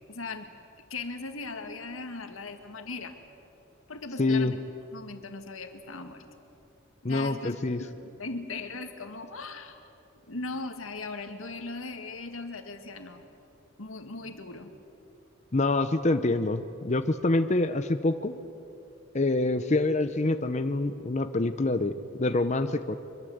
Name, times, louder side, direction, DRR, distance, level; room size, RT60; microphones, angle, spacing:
voice 1, 0.1-0.5 0.9-3.2 3.9-4.6 4.9-6.2 7.0-9.8 10.3-13.3 13.8-14.7, left 3 dB, 90° left, 6 dB, 2.0 m, -38 dB
voice 2, 4.2-4.5 7.0-7.8 15.5-18.3 19.1-21.9 22.2-23.0, left 2 dB, 35° left, 9 dB, 0.7 m, -26 dB
24.5 x 22.5 x 8.0 m, 2.8 s
head